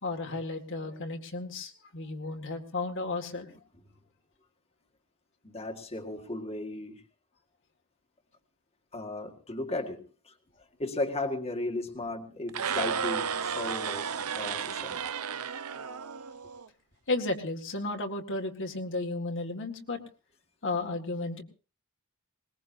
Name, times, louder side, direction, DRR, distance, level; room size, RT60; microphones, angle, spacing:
voice 1, 0.0-3.5 17.1-20.0 20.6-21.4, left 2 dB, 60° left, 3 dB, 2.0 m, -33 dB
voice 2, 5.4-7.0 8.9-15.0, left 2 dB, 30° left, 3 dB, 1.8 m, -36 dB
sound 1, 12.5-16.7, right 7 dB, 80° right, 0.8 m, -33 dB
21.5 x 20.5 x 2.7 m, 0.35 s
head